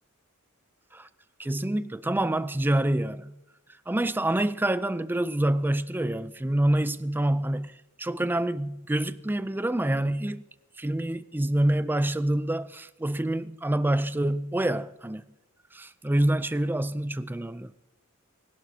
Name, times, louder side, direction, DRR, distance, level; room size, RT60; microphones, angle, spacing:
voice 1, 1.4-3.4 3.9-10.4 10.8-15.2 15.7-17.7, right 1 dB, 10° right, 0.4 m, -27 dB
20.5 x 18.5 x 2.8 m
head